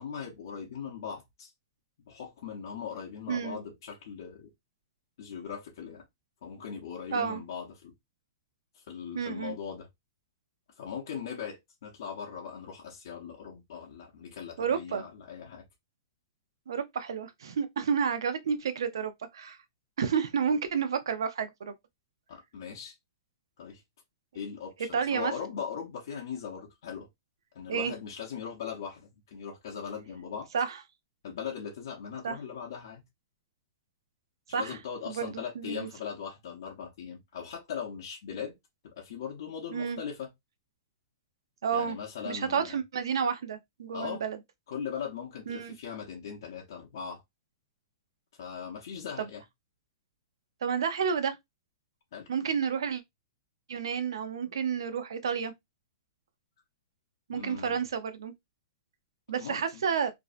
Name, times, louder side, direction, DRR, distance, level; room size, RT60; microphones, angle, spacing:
voice 1, 0.0-1.5 2.0-4.5 5.2-6.1 6.4-7.9 8.7-9.9 10.8-15.6 22.3-22.9 23.6-23.8 24.3-27.1 27.5-30.5 31.2-33.0 34.5-38.6 38.8-40.3 41.7-42.8 43.9-44.2 44.7-47.2 48.4-49.4 52.1-52.3 57.3-57.8 59.4-59.8, left 7 dB, 55° left, 0.6 m, -39 dB
voice 2, 3.3-3.6 7.1-7.4 9.1-9.6 14.6-15.0 16.7-19.6 20.0-21.7 24.9-25.3 27.7-27.9 30.5-30.8 32.2-32.4 34.5-34.8 35.1-35.9 39.7-40.0 41.6-42.0 42.3-44.4 45.5-45.7 50.6-51.4 52.3-53.0 53.7-55.5 57.3-58.3 59.3-60.1, right 6 dB, 90° right, 0.5 m, -30 dB
2.5 x 2.1 x 2.4 m
hypercardioid pair, 180°, 2 cm